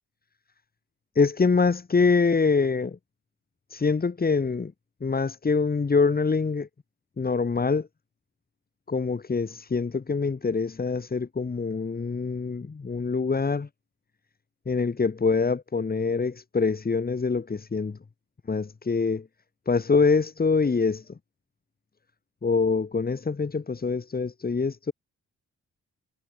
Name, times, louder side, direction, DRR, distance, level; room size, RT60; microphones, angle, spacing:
voice 1, 1.2-3.0 3.7-4.7 5.0-6.7 7.2-7.9 8.9-13.7 14.7-18.0 18.5-19.3 19.7-21.1 22.4-24.9, left 4 dB, 30° left, 6.9 m, -25 dB
wide cardioid pair, 130°, 29 cm